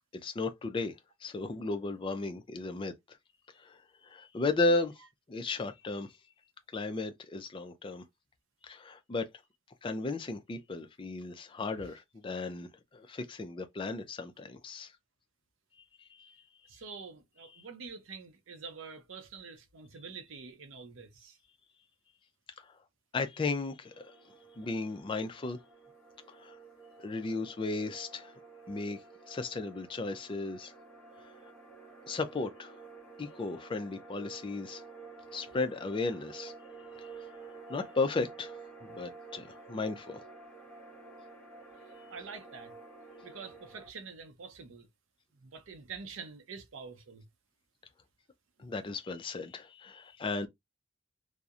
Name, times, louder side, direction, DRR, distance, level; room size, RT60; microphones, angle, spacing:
voice 1, 0.1-3.2 3.5-5.0 5.3-6.2 6.7-8.1 8.6-9.3 9.8-14.9 16.0-16.4 17.5-17.6 22.6-22.8 23.1-24.1 24.6-25.6 26.3-26.6 27.0-28.3 28.7-29.0 29.3-30.7 31.2-31.3 32.1-32.8 33.2-34.8 35.3-36.5 37.0-37.3 37.7-38.6 38.8-40.3 48.6-50.5, left 3 dB, 25° left, 0.3 m, -35 dB
voice 2, 16.7-21.4 42.1-42.7 43.2-44.9 45.4-47.2, right 5 dB, 85° right, 0.5 m, -46 dB
sound 1, 23.9-43.9, right 4 dB, 10° left, 0.9 m, -51 dB
2.6 x 2.0 x 2.4 m
head